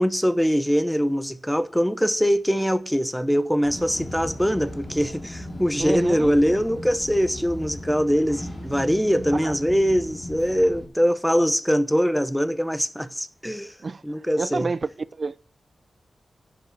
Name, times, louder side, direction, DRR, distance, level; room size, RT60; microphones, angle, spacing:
voice 1, 0.0-13.7 14.0-14.7, equal, ahead, 1.0 m, -22 dB
sound 1, 3.6-10.9, left 1 dB, 40° left, 3.5 m, -37 dB
voice 2, 5.8-6.3 9.4-9.5 13.8-14.0 14.4-14.9 15.2-15.4, right 4 dB, 45° right, 0.7 m, -28 dB
10.5 x 6.6 x 6.7 m
wide cardioid pair, 100°, 0 cm